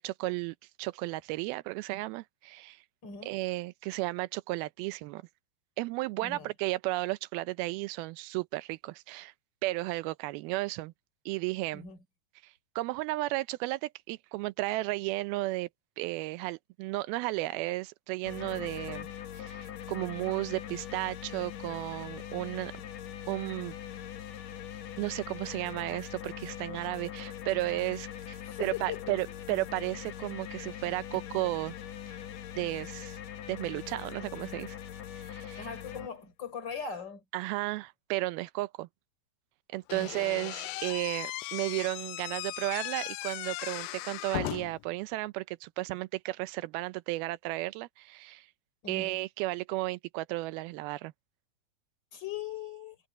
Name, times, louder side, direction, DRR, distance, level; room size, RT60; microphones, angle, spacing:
voice 1, 0.0-2.8 3.2-5.2 5.8-9.3 9.6-10.9 11.3-11.9 12.4-15.7 16.0-19.1 19.3-22.7 23.3-23.8 25.0-31.7 32.1-32.2 32.6-33.2 33.5-34.8 35.1-35.6 37.3-38.9 39.7-48.5 48.9-51.1, right 20 dB, 85° right, 2.5 m, -34 dB
voice 2, 3.0-3.4 6.2-6.5 11.7-12.0 28.4-29.2 35.6-37.2 39.9-40.1 48.8-49.2 52.1-53.0, left 7 dB, 30° left, 4.8 m, -40 dB
sound 1, 18.2-36.1, left 10 dB, 65° left, 1.8 m, -42 dB
Slam / Squeak, 39.9-44.9, left 18 dB, 85° left, 1.9 m, -37 dB
omnidirectional pair, 4.3 m